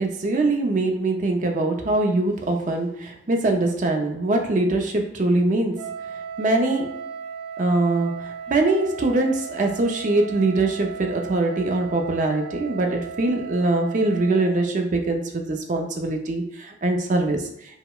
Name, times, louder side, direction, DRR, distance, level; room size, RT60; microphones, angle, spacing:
voice 1, 0.0-5.8 6.4-6.9 7.6-17.4, right 2 dB, 45° right, 3 dB, 0.5 m, -23 dB
Wind instrument woodwind instrument, 5.7-14.6, right 6 dB, 85° right, 0.8 m, -36 dB
4.7 x 2.1 x 2.3 m, 0.75 s
head